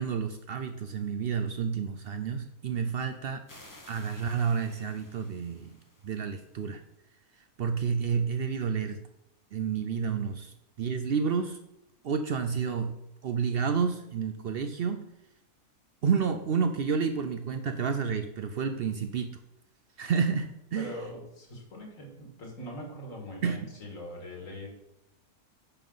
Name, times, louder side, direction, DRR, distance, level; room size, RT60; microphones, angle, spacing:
voice 1, 0.0-3.4 3.9-5.7 6.0-6.8 7.6-9.0 9.5-11.6 12.0-13.0 13.2-15.0 16.0-19.3 20.0-20.9 23.4-23.6, right 6 dB, 75° right, 7 dB, 0.5 m, -30 dB
sound 1, 3.5-6.8, left 1 dB, 15° left, 0.8 m, -54 dB
voice 2, 20.7-24.7, left 1 dB, 60° left, 0 dB, 2.2 m, -42 dB
9.9 x 5.6 x 3.9 m, 0.81 s
omnidirectional pair, 1.6 m